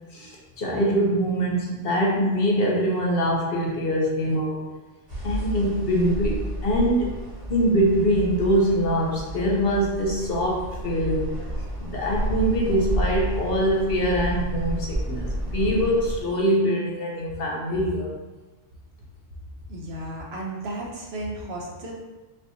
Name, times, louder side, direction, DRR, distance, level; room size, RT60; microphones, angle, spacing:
voice 1, 0.1-4.6 5.2-7.1 7.5-11.4 11.8-18.1, equal, 55° left, -2 dB, 0.8 m, -23 dB
sound 1, 5.1-16.2, right 1 dB, 35° right, 1.7 m, -31 dB
voice 2, 19.7-21.9, right 1 dB, 60° right, -2 dB, 0.9 m, -34 dB
5.2 x 2.9 x 2.7 m, 1.2 s
omnidirectional pair, 1.3 m